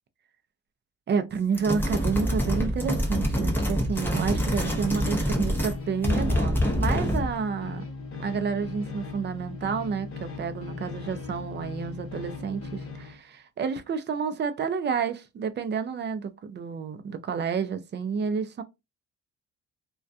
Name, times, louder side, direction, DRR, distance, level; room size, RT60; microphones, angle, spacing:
voice 1, 1.1-7.8 8.2-18.6, right 6 dB, 35° right, 0.4 m, -30 dB
sound 1, 1.5-5.8 6.0-7.3, equal, 5° left, 0.7 m, -26 dB
sound 2, 3.6-13.2, left 4 dB, 45° left, 0.8 m, -38 dB
2.3 x 2.2 x 2.5 m
cardioid pair, 90°, 30 cm